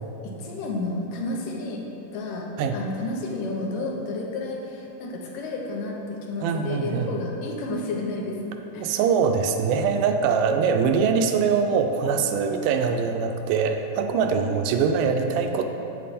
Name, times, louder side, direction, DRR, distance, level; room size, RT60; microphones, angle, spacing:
voice 1, 0.2-1.9 2.1-9.0, left 2 dB, 85° left, 0 dB, 2.6 m, -31 dB
voice 2, 6.4-7.1 8.8-15.6, right 6 dB, 85° right, 5 dB, 2.1 m, -23 dB
7.9 x 7.4 x 4.2 m, 2.9 s
omnidirectional pair, 3.8 m